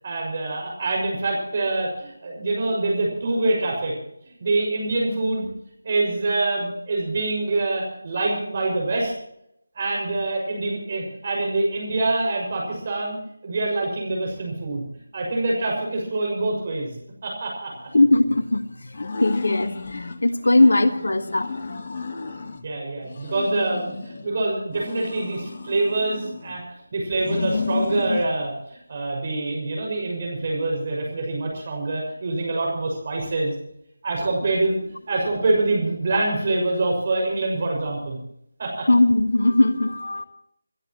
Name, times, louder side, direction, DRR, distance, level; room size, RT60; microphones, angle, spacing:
voice 1, 0.0-4.0 4.4-5.5 5.8-9.1 9.7-13.2 13.4-14.9 15.1-16.9 17.2-17.7 22.6-26.6 26.9-33.5 34.0-34.8 35.1-38.2 38.6-38.9, right 2 dB, 35° right, -1 dB, 6.4 m, -25 dB
voice 2, 17.9-21.8 38.8-40.2, left 2 dB, 65° left, 10 dB, 1.5 m, -20 dB
sound 1, 18.9-20.2 20.6-22.7 23.0-24.3 24.7-26.6 27.1-28.3, left 4 dB, 40° left, 1.6 m, -31 dB
28.5 x 13.0 x 3.1 m, 0.75 s
figure-of-eight pair, 160°, 0 cm